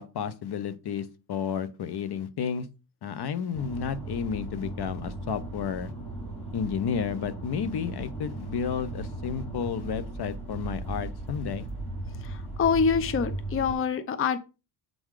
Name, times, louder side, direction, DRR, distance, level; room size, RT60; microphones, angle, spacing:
voice 1, 0.0-2.7 3.0-5.9 6.5-11.7, left 7 dB, 55° left, 0.8 m, -32 dB
sound 1, 3.5-13.7, right 2 dB, 15° left, 2.9 m, -37 dB
voice 2, 12.2-14.4, left 6 dB, 30° left, 0.6 m, -26 dB
7.7 x 3.9 x 4.8 m
cardioid pair, 120°, 46 cm